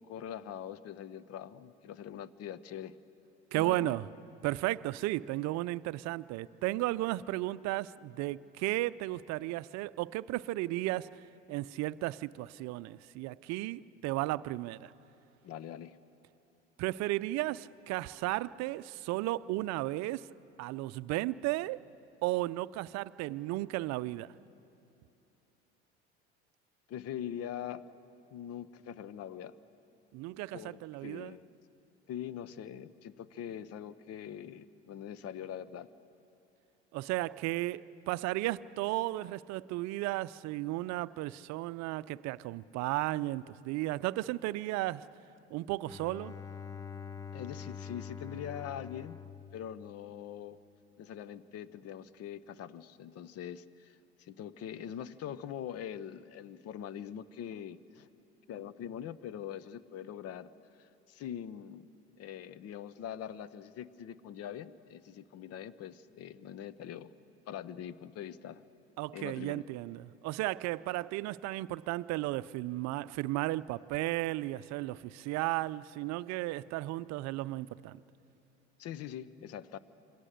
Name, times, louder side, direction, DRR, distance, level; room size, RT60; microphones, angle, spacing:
voice 1, 0.0-3.0 3.5-4.0 15.4-16.0 26.9-27.8 28.3-29.6 30.5-31.5 32.1-35.9 47.3-49.2 49.5-50.6 51.0-58.1 58.5-60.5 60.8-61.9 62.2-67.1 67.5-68.6 69.1-69.7 78.8-79.8, left 9 dB, 45° left, 0.9 m, -43 dB
voice 2, 3.5-4.1 4.4-11.1 11.5-14.9 16.8-20.3 20.6-21.8 22.2-24.3 30.1-31.4 36.9-45.1 45.5-46.3 69.0-78.0, right 18 dB, 55° right, 0.6 m, -34 dB
Bowed string instrument, 45.8-50.5, left 6 dB, 10° left, 0.7 m, -45 dB
27.5 x 22.5 x 6.6 m
hypercardioid pair, 70°, 33 cm